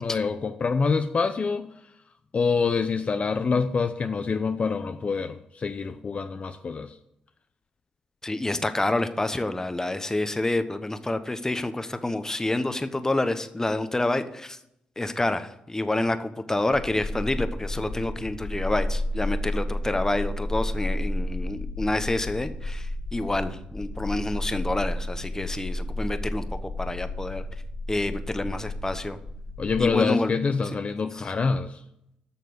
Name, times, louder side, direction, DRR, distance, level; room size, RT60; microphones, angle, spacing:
voice 1, 0.0-1.7 2.3-6.9 29.6-31.8, left 5 dB, 45° left, 8 dB, 0.7 m, -26 dB
voice 2, 8.2-14.6 15.0-27.4 27.9-29.2 29.8-30.3 31.1-31.2, left 2 dB, 15° left, 10 dB, 1.1 m, -28 dB
sound 1, 16.7-30.0, left 1 dB, 85° left, 3.7 m, -32 dB
9.4 x 6.6 x 7.9 m, 0.79 s
cardioid pair, 60°, 3 cm